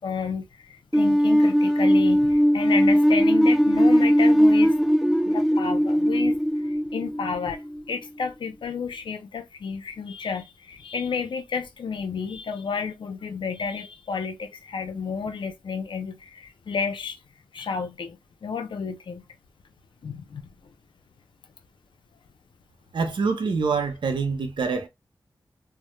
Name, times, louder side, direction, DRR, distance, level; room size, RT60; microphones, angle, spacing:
voice 1, 0.0-4.7 5.2-6.4 6.6-17.2 17.5-19.2 20.0-20.7, left 5 dB, 80° left, 0.4 m, -31 dB
sound 1, 0.9-7.8, equal, 5° right, 0.7 m, -19 dB
voice 2, 22.9-24.9, right 4 dB, 80° right, 0.6 m, -25 dB
2.1 x 2.0 x 3.0 m
wide cardioid pair, 75°, 8 cm